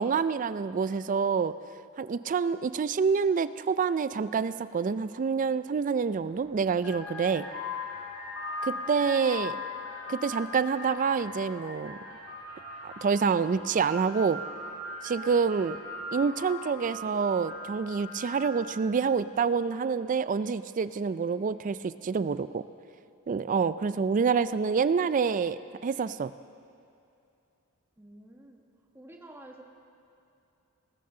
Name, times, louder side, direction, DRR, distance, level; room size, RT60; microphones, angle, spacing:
voice 1, 0.0-1.5 2.0-7.5 8.6-9.6 10.1-12.0 12.8-14.4 15.0-15.8 16.1-22.6 23.3-26.3, right 5 dB, 40° right, 15 dB, 0.3 m, -27 dB
sound 1, 6.1-6.3 6.8-18.9, left 2 dB, 65° left, 2.6 m, -39 dB
voice 2, 28.0-28.6 28.9-29.6, right 1 dB, 10° right, 1 dB, 1.3 m, -50 dB
19.5 x 14.0 x 3.8 m, 2.6 s
head